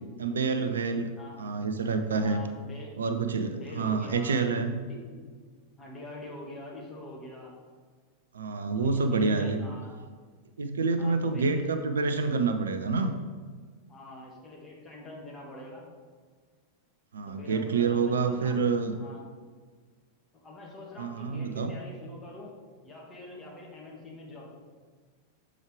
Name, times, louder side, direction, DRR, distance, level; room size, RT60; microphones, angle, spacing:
voice 1, 0.2-1.1 1.4-2.4 3.0-4.8 8.3-9.6 10.6-13.1 17.1-18.9 21.0-21.7, right 4 dB, 70° right, 8 dB, 0.4 m, -27 dB
voice 2, 2.2-2.9 3.4-4.4 4.8-5.2 5.8-7.5 8.7-9.9 11.0-11.6 13.9-15.8 17.3-19.2 20.3-22.5 22.8-24.5, left 2 dB, 20° left, -3 dB, 1.8 m, -45 dB
7.1 x 4.7 x 3.3 m, 1.6 s
figure-of-eight pair, 90°, 0 cm